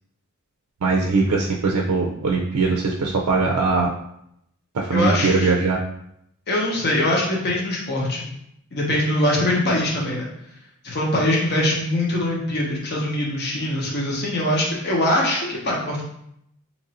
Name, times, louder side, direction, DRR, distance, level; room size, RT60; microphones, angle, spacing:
voice 1, 0.8-3.9 4.7-5.8, right 3 dB, 75° right, -1 dB, 0.4 m, -21 dB
voice 2, 4.9-5.5 6.5-8.3 8.7-10.3 10.8-16.0, left 1 dB, 45° left, -2 dB, 0.8 m, -22 dB
3.0 x 2.5 x 4.0 m, 0.76 s
head